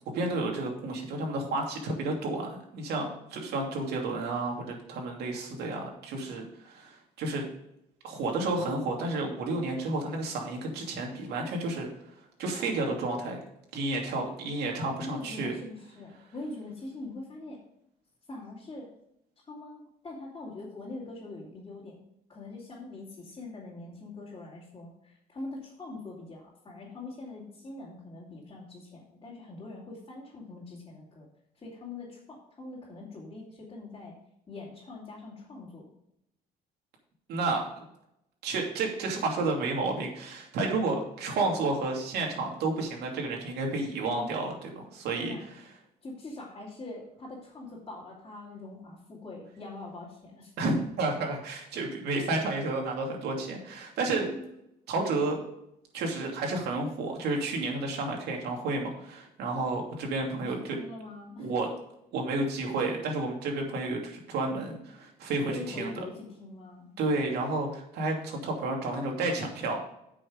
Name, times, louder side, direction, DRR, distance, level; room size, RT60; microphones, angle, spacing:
voice 1, 0.1-7.4 8.0-11.9 12.4-13.4 13.7-15.5 37.3-37.8 38.4-45.3 50.6-54.3 54.9-55.4 55.9-60.6 61.4-61.7 62.1-65.9 67.0-69.8, right 2 dB, 75° right, 1 dB, 2.7 m, -31 dB
voice 2, 15.0-17.6 18.3-18.9 19.4-22.0 22.3-31.3 31.6-34.2 34.5-35.9 45.2-45.4 46.0-50.5 54.1-54.5 60.4-61.5 65.5-66.9, left 2 dB, 25° left, -7 dB, 3.0 m, -43 dB
8.7 x 6.4 x 5.2 m, 0.79 s
cardioid pair, 110°, 17 cm